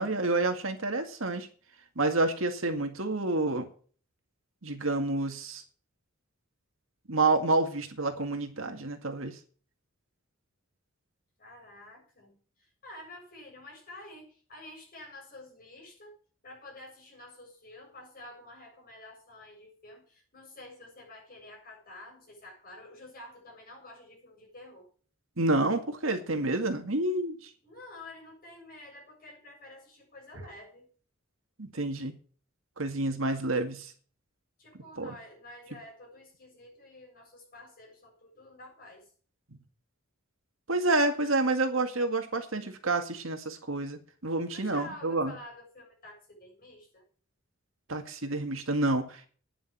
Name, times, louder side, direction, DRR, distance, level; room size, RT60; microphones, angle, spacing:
voice 1, 0.0-1.5 2.0-3.7 4.6-5.6 7.1-9.4 25.4-27.5 31.6-32.2 32.8-33.9 35.0-35.1 40.7-45.3 47.9-49.3, right 2 dB, 70° right, 6 dB, 2.1 m, -29 dB
voice 2, 11.4-16.2 16.4-24.9 27.6-30.9 34.6-39.1 44.3-47.0, left 1 dB, 45° left, 0 dB, 7.2 m, -49 dB
10.0 x 7.3 x 8.6 m, 0.43 s
head